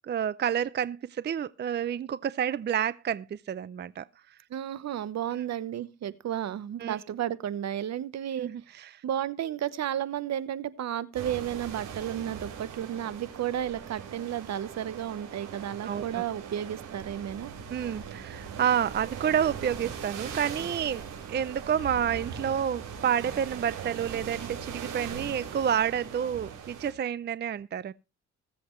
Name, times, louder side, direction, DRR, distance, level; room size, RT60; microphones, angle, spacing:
voice 1, 0.1-4.0 6.8-7.0 8.4-9.0 15.8-16.3 17.7-27.9, right 9 dB, 35° right, 0.5 m, -29 dB
voice 2, 4.5-8.5 9.0-17.5, right 10 dB, 60° right, 1.0 m, -33 dB
sound 1, 11.1-26.9, right 7 dB, 85° right, 5.7 m, -40 dB
21.0 x 7.8 x 3.2 m
cardioid pair, 90°, 30 cm